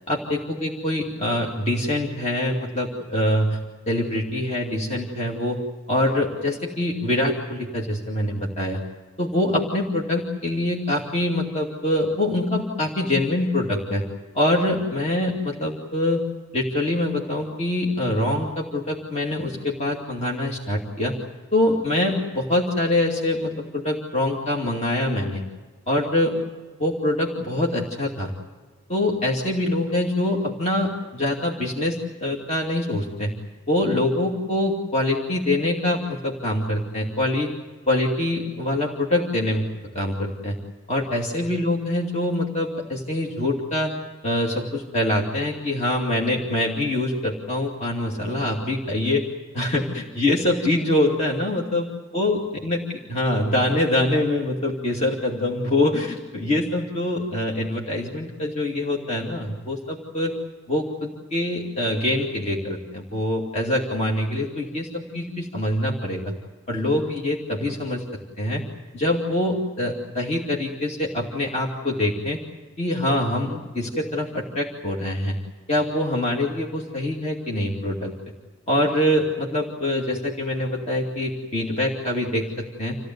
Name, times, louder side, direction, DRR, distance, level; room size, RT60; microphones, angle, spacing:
voice 1, 0.1-3.6 3.9-5.6 5.9-8.8 9.2-14.0 14.3-16.2 16.5-21.2 21.5-25.4 25.9-26.4 26.8-28.3 28.9-33.3 33.7-37.5 37.9-39.7 39.9-40.6 40.9-43.9 44.2-49.2 49.5-51.9 52.1-60.3 60.7-66.3 66.7-68.0 68.4-68.6 68.9-72.4 72.8-75.4 75.7-78.1 78.7-83.0, left 1 dB, 35° left, -2 dB, 2.5 m, -24 dB
28.0 x 16.0 x 9.4 m, 1.4 s
head